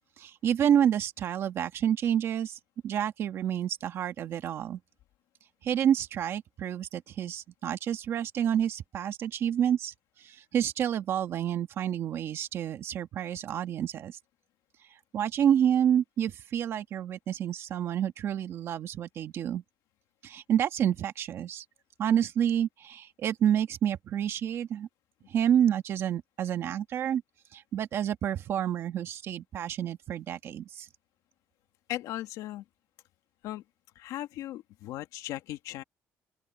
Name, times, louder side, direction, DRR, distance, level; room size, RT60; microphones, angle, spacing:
voice 1, 0.2-2.6 2.8-4.8 5.6-9.9 10.2-14.2 15.1-19.6 20.2-21.6 22.0-24.9 25.3-27.2 27.5-30.9, right 9 dB, 45° right, 1.6 m, -29 dB
voice 2, 31.9-32.6 33.4-33.6 34.0-35.8, left 14 dB, 75° left, 2.1 m, -37 dB
open air
cardioid pair, 175°, 6 cm